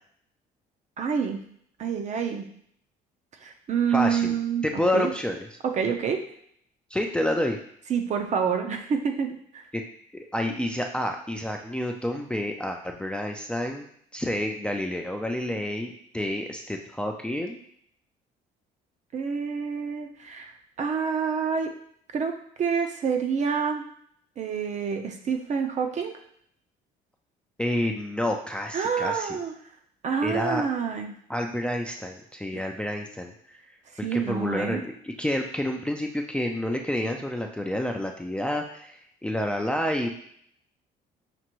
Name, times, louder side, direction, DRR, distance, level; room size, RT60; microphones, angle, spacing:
voice 1, 1.0-1.4 1.8-2.4 3.4-4.6 4.9-5.1 5.6-6.2 7.9-9.6 19.1-20.5 20.8-21.7 22.1-22.3 22.6-23.8 24.4-26.1 28.7-29.5 30.0-31.1 34.0-34.8, right 6 dB, 45° right, 5 dB, 0.6 m, -27 dB
voice 2, 3.9-4.4 4.6-5.5 6.9-7.6 9.7-9.8 10.1-13.8 14.1-17.6 27.6-29.4 30.2-30.7 31.3-33.3 34.0-40.1, left 1 dB, 5° left, 2 dB, 0.4 m, -29 dB
5.9 x 2.6 x 3.0 m, 0.66 s
cardioid pair, 110°, 17 cm